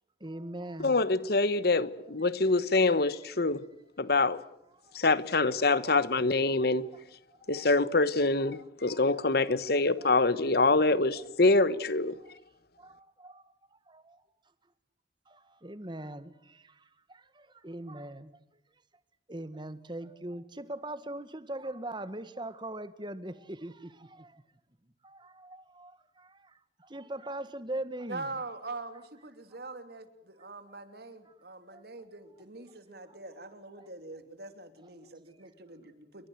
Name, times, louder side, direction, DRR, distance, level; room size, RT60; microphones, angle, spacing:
voice 1, 0.2-1.0 4.8-5.0 6.8-6.9 7.4-7.6 8.5-9.6 10.0-10.3 10.8-10.9 12.2-12.3 12.8-14.2 15.3-18.3 19.3-24.4 25.0-28.3 30.4-30.5 31.3-31.4 31.7-31.8 33.1-33.2 33.8-33.9, right 1 dB, 25° right, 1.7 m, -42 dB
voice 2, 0.8-3.6 4.0-4.4 4.9-6.9 7.5-12.2, left 3 dB, 60° left, 1.2 m, -25 dB
voice 3, 28.1-36.3, right 3 dB, 60° right, 3.0 m, -43 dB
29.0 x 23.5 x 7.9 m
head